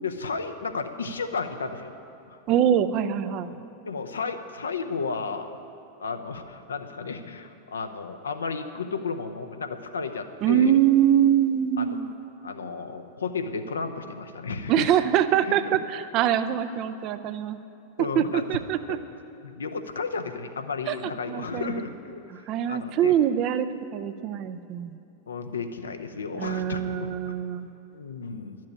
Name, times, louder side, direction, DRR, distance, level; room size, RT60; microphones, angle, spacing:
voice 1, 0.0-1.9 2.3-2.4 3.5-3.6 3.9-5.5 6.0-10.8 11.8-11.9 12.4-15.0 15.4-15.8 18.0-18.4 18.9-19.1 19.4-22.2 22.7-23.1 25.3-27.1 27.9-28.6, left 4 dB, 70° left, 8 dB, 0.7 m, -33 dB
voice 2, 2.5-3.5 10.4-12.1 14.7-17.6 18.2-19.0 20.9-21.8 22.3-24.9 26.4-27.7, right 10 dB, 40° right, 12 dB, 0.5 m, -24 dB
11.5 x 7.5 x 8.8 m, 2.8 s
figure-of-eight pair, 90°, 0 cm